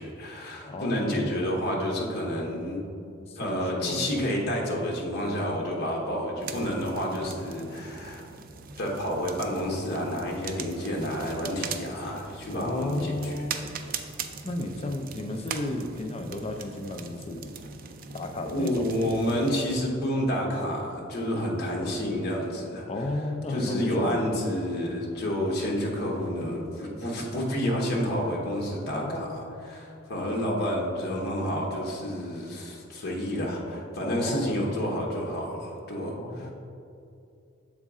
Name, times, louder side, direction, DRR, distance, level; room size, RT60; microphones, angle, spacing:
voice 1, 0.0-2.8 3.4-8.2 8.8-13.4 18.4-22.9 23.5-36.5, equal, 55° left, -2 dB, 1.0 m, -29 dB
voice 2, 0.6-1.4 3.2-4.0 12.5-13.7 14.4-17.5 18.1-18.9 22.9-24.3 28.9-29.6 34.0-34.6 36.0-36.5, left 1 dB, 30° left, 5 dB, 0.4 m, -33 dB
sound 1, 6.4-19.8, right 6 dB, 45° right, 0.4 m, -41 dB
7.4 x 4.1 x 3.6 m, 2.6 s
head